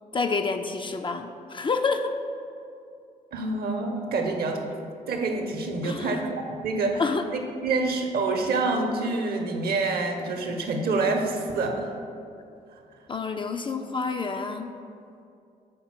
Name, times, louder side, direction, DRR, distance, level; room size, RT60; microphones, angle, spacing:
voice 1, 0.0-2.1 5.8-6.2 7.0-7.2 13.1-14.7, left 4 dB, 25° left, 6 dB, 0.4 m, -28 dB
voice 2, 3.3-4.6 5.1-7.0 7.3-11.9, right 3 dB, 50° right, 4 dB, 0.8 m, -27 dB
5.1 x 4.3 x 5.7 m, 2.5 s
figure-of-eight pair, 40°, 20 cm